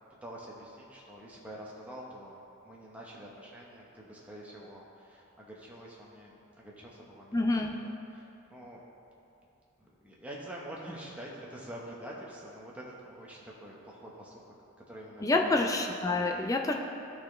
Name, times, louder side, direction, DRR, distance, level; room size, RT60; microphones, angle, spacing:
voice 1, 0.2-8.8 9.8-14.4 14.9-16.0, right 1 dB, 5° right, -4 dB, 0.9 m, -46 dB
voice 2, 7.3-7.8 15.2-16.7, left 2 dB, 15° left, 2 dB, 0.4 m, -27 dB
12.5 x 4.2 x 3.2 m, 2.7 s
head